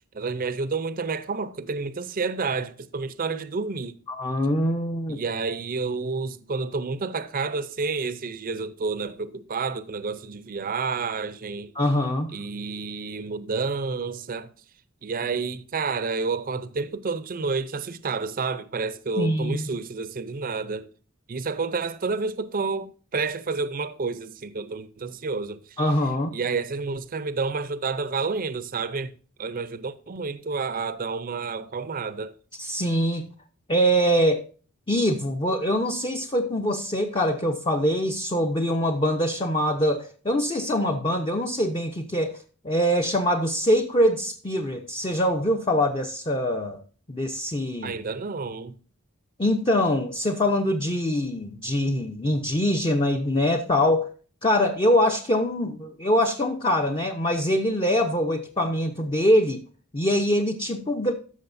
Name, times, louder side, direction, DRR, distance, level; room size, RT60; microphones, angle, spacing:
voice 1, 0.1-4.0 5.1-11.7 12.3-14.5 15.0-20.9 21.3-25.8 26.3-29.1 29.4-32.3 47.8-48.8, right 4 dB, 40° right, 0.6 m, -30 dB
voice 2, 4.1-5.2 11.8-12.3 19.2-19.7 25.8-26.4 32.6-33.3 33.7-34.4 34.9-46.8 47.1-47.9 49.4-54.1 54.4-59.6 59.9-61.1, equal, 25° left, 0.7 m, -23 dB
13.5 x 6.3 x 2.6 m
head